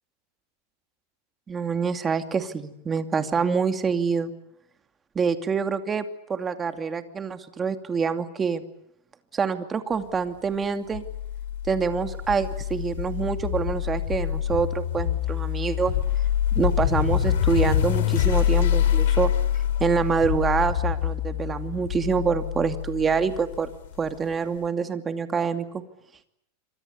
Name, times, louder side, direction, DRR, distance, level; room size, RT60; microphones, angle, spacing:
voice 1, 1.5-4.3 5.1-8.6 9.3-11.0 11.7-15.9 16.5-19.3 19.8-23.7 24.0-25.8, right 5 dB, 20° right, 8 dB, 2.6 m, -26 dB
sound 1, 10.9-24.1, left 10 dB, 75° left, 4.5 m, -25 dB
27.5 x 26.0 x 8.3 m, 0.77 s
supercardioid pair, 140°, 0 cm